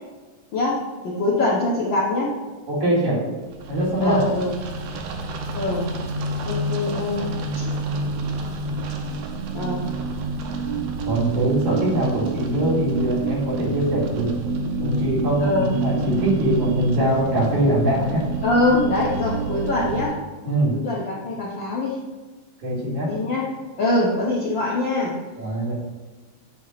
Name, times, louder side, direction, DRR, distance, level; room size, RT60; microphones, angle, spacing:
voice 1, 0.5-2.3 4.0-4.6 5.6-5.9 6.5-7.3 7.6-7.7 9.5-9.8 15.4-15.7 18.4-20.2 20.7-22.0 23.1-23.5 23.8-25.2, left 2 dB, 70° left, -5 dB, 1.1 m, -23 dB
voice 2, 2.7-3.2 3.7-4.2 11.1-14.3 14.8-18.3 20.5-20.7 22.6-23.1 25.4-25.7, right 1 dB, 90° right, -6 dB, 3.6 m, -22 dB
sound 1, 3.5-20.1, right 3 dB, 70° right, 1.6 m, -28 dB
7.9 x 2.9 x 5.7 m, 1.3 s
omnidirectional pair, 3.3 m